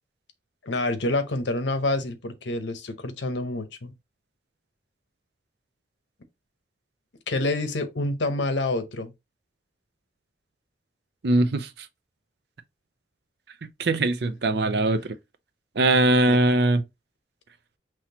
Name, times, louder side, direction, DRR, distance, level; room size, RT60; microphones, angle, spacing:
voice 1, 0.6-3.9 7.3-9.1 16.3-16.4, left 2 dB, 85° left, 0.8 m, -27 dB
voice 2, 11.2-11.9 13.8-15.2 15.8-16.8, right 2 dB, 60° right, 0.5 m, -21 dB
5.8 x 3.0 x 2.8 m
head